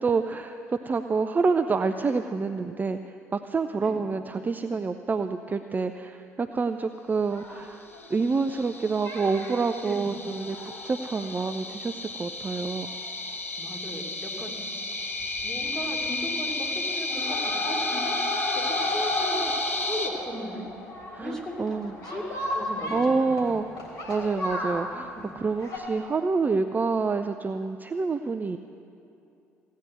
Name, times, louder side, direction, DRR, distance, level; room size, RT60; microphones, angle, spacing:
voice 1, 0.0-7.8 8.1-12.9 21.1-21.9 22.9-23.6 24.1-28.6, right 4 dB, 25° right, 9 dB, 0.5 m, -27 dB
sound 1, 7.1-8.7 9.0-9.6 10.1-12.1 12.6-12.7 12.8-12.9 13.2-13.3 14.7-14.9 15.2-15.7 16.0-16.5 16.8-25.8, left 1 dB, 60° left, 3.2 m, -34 dB
sound 2, 7.9-20.1, left 3 dB, 90° left, 0.8 m, -33 dB
voice 2, 13.6-14.6 15.4-18.2 18.6-20.6 21.2-22.2 22.5-23.6 25.1-25.4, equal, 5° left, -1 dB, 2.8 m, -37 dB
16.5 x 9.3 x 7.8 m, 2.6 s
figure-of-eight pair, 50°, 7 cm